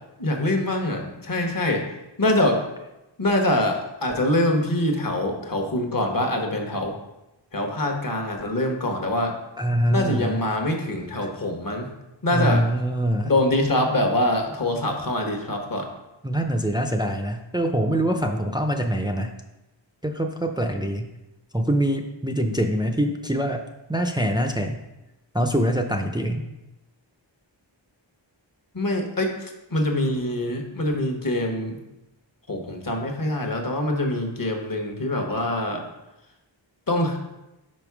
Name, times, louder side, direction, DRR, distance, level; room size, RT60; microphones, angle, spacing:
voice 1, 0.2-1.8 2.2-2.6 3.2-6.9 7.5-9.3 9.9-11.9 12.2-12.6 13.2-15.9 28.7-31.8 32.5-35.8 36.9-37.2, left 1 dB, 45° left, 3 dB, 1.1 m, -24 dB
voice 2, 9.6-10.4 12.3-13.3 16.2-19.3 20.0-21.1 21.5-23.6 23.9-24.8 25.3-26.4, equal, 10° right, 4 dB, 0.5 m, -24 dB
5.3 x 5.3 x 4.7 m, 0.97 s
wide cardioid pair, 70°, 47 cm